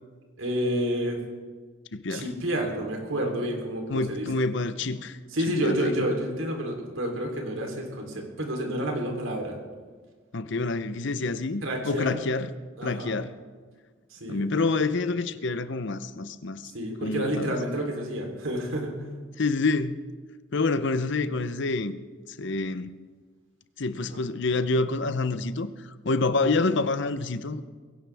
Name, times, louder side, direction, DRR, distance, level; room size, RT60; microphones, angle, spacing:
voice 1, 0.4-1.2 2.1-4.4 5.3-9.6 11.6-12.2 12.8-13.2 14.1-14.4 16.7-19.0 24.1-24.2 26.5-26.6, equal, 80° right, 1 dB, 3.4 m, -29 dB
voice 2, 1.9-2.3 3.9-5.2 5.6-5.9 10.3-12.5 12.8-13.3 14.3-16.7 17.0-17.6 19.4-20.0 20.5-22.0 22.4-22.9 23.8-25.7 26.0-27.6, left 3 dB, 60° left, 13 dB, 0.7 m, -27 dB
21.5 x 17.0 x 3.5 m, 1.5 s
head